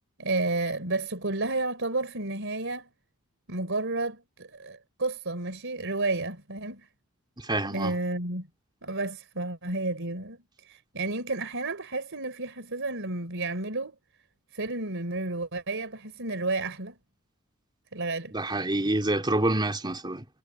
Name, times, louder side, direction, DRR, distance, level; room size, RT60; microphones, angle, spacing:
voice 1, 0.2-2.9 3.5-6.9 7.7-8.5 8.8-10.4 10.6-14.0 14.5-16.9 17.9-18.3, right 2 dB, 60° right, 4.0 m, -31 dB
voice 2, 7.4-7.9 18.3-20.3, right 1 dB, 20° right, 3.2 m, -27 dB
head